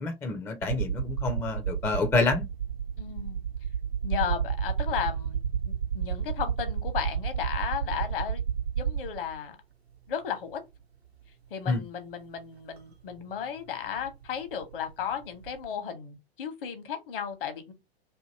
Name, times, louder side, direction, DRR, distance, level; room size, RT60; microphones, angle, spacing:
voice 1, 0.0-2.4 11.7-11.8, left 3 dB, 10° left, 0.4 m, -28 dB
sound 1, 0.6-9.4 10.5-10.6 12.8-12.9 13.1-15.7, right 8 dB, 85° right, 0.8 m, -31 dB
voice 2, 3.0-3.5 4.0-5.4 5.6-8.4 8.8-9.6 10.1-10.6 11.5-17.7, left 8 dB, 60° left, 1.0 m, -34 dB
2.7 x 2.6 x 2.7 m
figure-of-eight pair, 90°, 31 cm